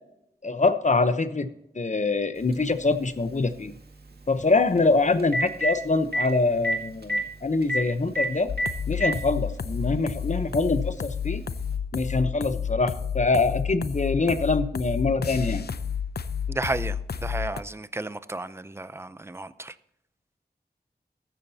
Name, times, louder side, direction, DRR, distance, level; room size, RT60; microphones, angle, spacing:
voice 1, 0.4-1.5 1.7-3.7 4.3-8.5 8.9-11.4 11.9-15.7, left 3 dB, 45° left, 11 dB, 0.9 m, -24 dB
Telephone, 2.5-2.6 4.8-4.9 5.2-5.7 6.1-6.2 6.6-6.8 7.0-7.2 7.7-7.8 8.2-8.3 8.6-9.1 10.1-10.2 11.7-11.8, equal, 70° right, 1.9 m, -25 dB
sound 1, 8.5-17.6, left 7 dB, 70° left, 0.6 m, -31 dB
voice 2, 16.5-19.7, right 2 dB, 15° right, 14 dB, 0.6 m, -33 dB
15.0 x 12.0 x 2.9 m, 0.80 s
wide cardioid pair, 80°, 17 cm